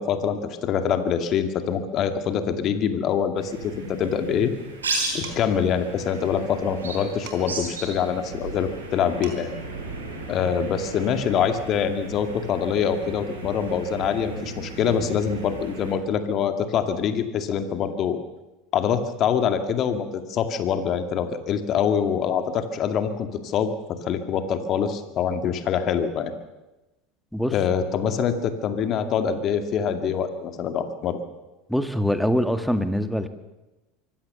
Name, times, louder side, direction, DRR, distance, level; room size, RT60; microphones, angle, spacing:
voice 1, 0.0-4.5 5.1-9.5 10.3-18.2 18.7-26.3 27.5-31.2, left 7 dB, 45° left, 8 dB, 2.2 m, -25 dB
sound 1, 3.4-15.9, right 3 dB, 85° right, 5.8 m, -35 dB
Dishes pots and pans, 5.2-5.7 7.3-7.7 8.9-9.0 9.2-9.7, right 6 dB, 65° right, 4.2 m, -42 dB
voice 2, 31.7-33.3, equal, ahead, 9 dB, 1.8 m, -23 dB
24.5 x 16.0 x 6.9 m, 1.0 s
hypercardioid pair, 80°, 0 cm